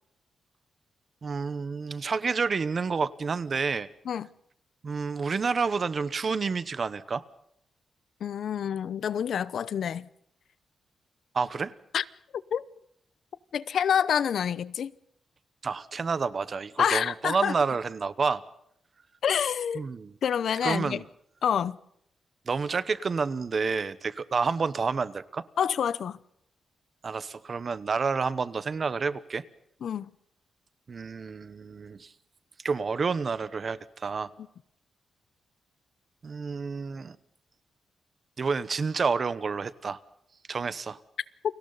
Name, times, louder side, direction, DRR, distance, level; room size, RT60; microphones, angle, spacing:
voice 1, 1.2-3.9 4.8-7.2 11.3-11.7 15.6-18.4 19.7-20.1 20.6-21.0 22.5-25.4 27.0-29.4 30.9-32.1 32.6-34.3 36.2-37.2 38.4-40.0 40.5-41.0, right 5 dB, 35° right, 1.0 m, -29 dB
voice 2, 8.2-10.1 11.9-12.0 12.5-12.6 13.5-14.9 16.8-17.5 19.2-19.9 20.2-21.0 21.4-21.8 25.6-26.2 29.8-30.1, left 8 dB, 65° left, 0.8 m, -27 dB
30.0 x 24.0 x 4.1 m
wide cardioid pair, 160°, 0 cm